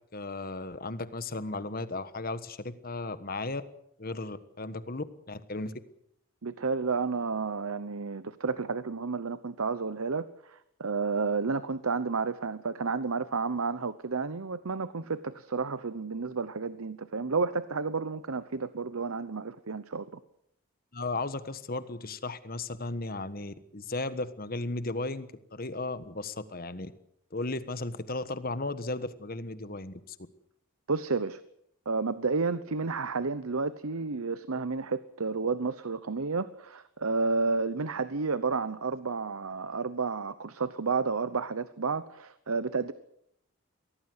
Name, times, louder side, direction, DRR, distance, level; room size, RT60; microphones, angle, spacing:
voice 1, 0.1-3.6 4.0-5.7 20.9-26.9 27.3-30.2, left 2 dB, 45° left, 12 dB, 1.4 m, -35 dB
voice 2, 6.4-20.2 30.9-31.4 31.9-42.9, right 4 dB, 90° right, 14 dB, 0.9 m, -31 dB
23.5 x 17.5 x 8.0 m, 0.75 s
head